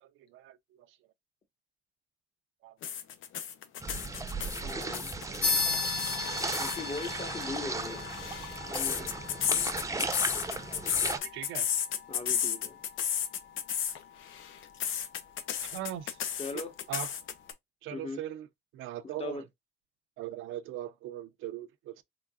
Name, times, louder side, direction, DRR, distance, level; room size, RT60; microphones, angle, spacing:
voice 1, 0.0-0.9 2.6-2.8 5.3-5.6 10.9-11.7 15.6-16.2 16.9-17.1 17.8-18.5 18.7-19.4 20.2-22.0, right 12 dB, 90° right, 0.6 m, -40 dB
sound 1, 2.8-6.8 7.8-14.0 14.3-17.5, left 9 dB, 80° left, 0.8 m, -32 dB
sound 2, 3.8-11.2, right 3 dB, 15° right, 0.7 m, -36 dB
voice 2, 4.4-5.1 6.6-8.1 8.6-9.1 12.1-12.8 16.4-16.7 17.9-18.2 19.0-19.4, left 3 dB, 30° left, 1.2 m, -40 dB
sound 3, 5.4-15.4, left 4 dB, 60° left, 1.6 m, -37 dB
3.8 x 3.7 x 2.4 m
cardioid pair, 90°, 20 cm